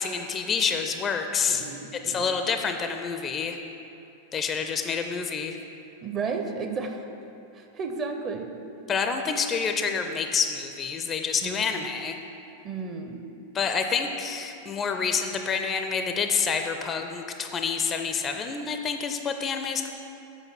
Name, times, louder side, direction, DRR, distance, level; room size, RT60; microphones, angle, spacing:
voice 1, 0.0-1.6 2.1-3.6 4.3-5.6 8.9-12.1 13.5-19.9, left 6 dB, 25° left, 6 dB, 0.5 m, -28 dB
voice 2, 1.5-2.3 6.0-7.0 7.5-8.5 11.4-11.9 12.6-13.2, right 4 dB, 30° right, 4 dB, 0.7 m, -33 dB
8.2 x 5.1 x 6.1 m, 2.8 s
figure-of-eight pair, 90°, 0 cm